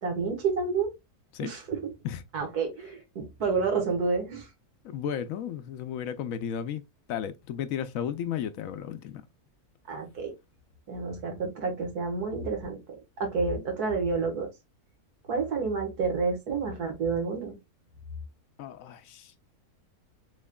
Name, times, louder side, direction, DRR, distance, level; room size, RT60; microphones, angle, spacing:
voice 1, 0.0-0.9 1.4-1.8 2.3-4.5 9.9-10.3 10.9-12.8 13.2-14.5 15.3-17.6, right 4 dB, 85° right, 2.0 m, -29 dB
voice 2, 4.8-6.8 7.1-9.2 18.6-19.3, left 9 dB, 70° left, 0.9 m, -34 dB
6.4 x 3.2 x 2.2 m
omnidirectional pair, 1.6 m